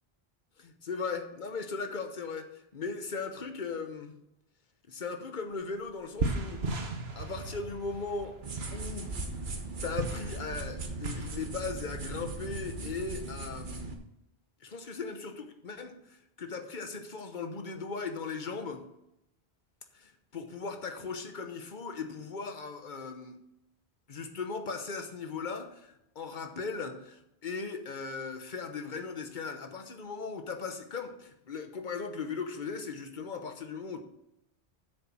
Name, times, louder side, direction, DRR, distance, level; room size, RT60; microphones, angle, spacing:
voice 1, 0.8-4.1 4.9-6.8 7.2-8.4 8.7-9.1 9.8-14.0 14.6-18.8 19.9-23.4 24.1-34.0, left 4 dB, 50° left, 6 dB, 1.1 m, -38 dB
sound 1, 5.5-5.6 5.9-11.4, right 3 dB, 70° right, 1.4 m, -36 dB
sound 2, 8.4-13.9, right 3 dB, 50° right, 1.2 m, -38 dB
8.1 x 6.6 x 6.1 m, 0.83 s
omnidirectional pair, 1.1 m